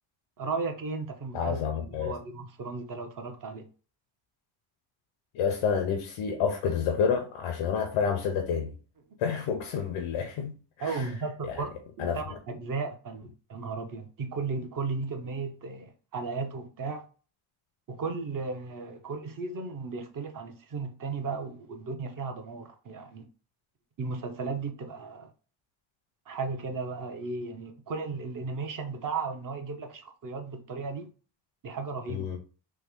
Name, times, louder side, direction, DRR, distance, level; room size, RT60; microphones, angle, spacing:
voice 1, 0.4-3.7 10.8-11.7 12.0-17.0 18.0-23.3 24.0-25.3 26.3-31.1 31.6-32.3, right 4 dB, 40° right, 0.7 m, -35 dB
voice 2, 1.3-2.2 5.3-8.7 9.2-10.5 10.8-11.1 11.4-11.6 12.0-12.2 32.1-32.4, left 6 dB, 90° left, 0.6 m, -29 dB
3.2 x 2.1 x 3.5 m
cardioid pair, 95°, 48 cm